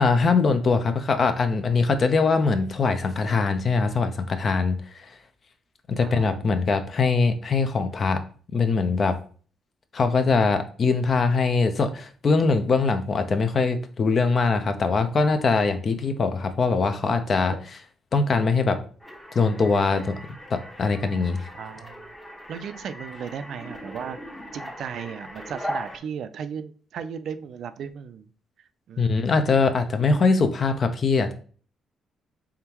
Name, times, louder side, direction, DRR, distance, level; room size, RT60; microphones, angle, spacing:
voice 1, 0.0-5.1 5.9-8.2 8.5-9.1 9.9-17.5 18.1-18.8 19.3-20.1 20.5-21.4 29.0-31.3, left 4 dB, 45° left, 8 dB, 0.6 m, -22 dB
voice 2, 6.0-6.5 17.5-17.6 21.5-22.1 22.5-24.2 24.5-28.3 28.9-29.3, right 7 dB, 65° right, 12 dB, 0.3 m, -36 dB
sound 1, 19.0-26.0, equal, 15° left, 0.9 m, -39 dB
3.6 x 3.4 x 2.9 m, 0.42 s
cardioid pair, 90°, 0 cm